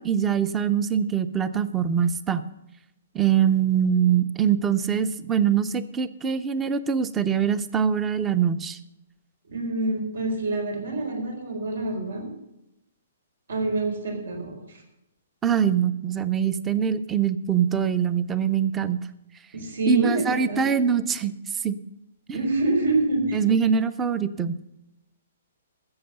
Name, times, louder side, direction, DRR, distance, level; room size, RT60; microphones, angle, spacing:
voice 1, 0.0-2.4 3.1-8.8 15.4-19.0 19.9-21.4 21.6-21.8 23.3-24.6, right 8 dB, 10° right, 15 dB, 0.5 m, -23 dB
voice 2, 9.5-12.3 13.5-14.8 19.5-20.7 22.3-23.4, right 2 dB, 85° right, 4 dB, 4.2 m, -27 dB
13.5 x 7.8 x 6.7 m, 0.88 s
hypercardioid pair, 175°, 0 cm